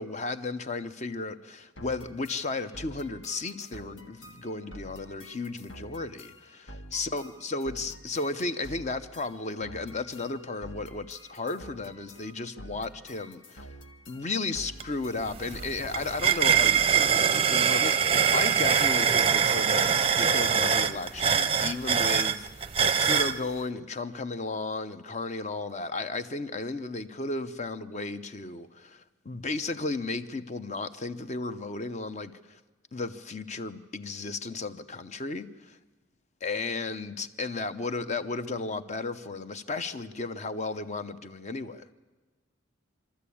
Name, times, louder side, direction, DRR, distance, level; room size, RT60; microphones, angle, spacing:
voice 1, 0.0-13.7 14.1-32.6 32.9-35.8 36.4-41.8, left 3 dB, 35° left, 0.8 m, -34 dB
sound 1, 1.8-17.5, equal, 70° left, 1.5 m, -48 dB
sound 2, 14.8-14.9 15.2-23.4, right 7 dB, 30° right, 0.6 m, -24 dB
25.5 x 13.0 x 8.5 m
head